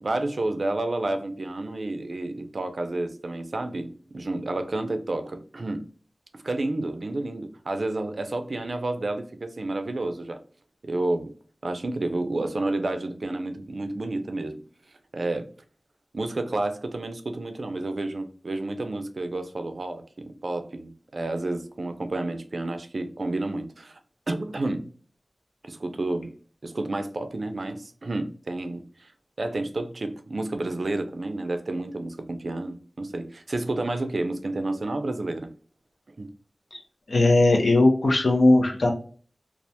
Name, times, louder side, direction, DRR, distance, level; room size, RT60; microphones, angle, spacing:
voice 1, 0.0-5.9 6.3-10.4 10.8-11.3 11.6-14.6 15.1-15.5 16.1-24.0 24.3-24.9 25.7-26.3 26.6-29.1 29.4-35.5 36.2-36.3, right 2 dB, 70° right, 0.4 m, -30 dB
voice 2, 37.1-38.9, left 2 dB, 85° left, 0.6 m, -19 dB
2.3 x 2.1 x 2.7 m
wide cardioid pair, 55°, 0 cm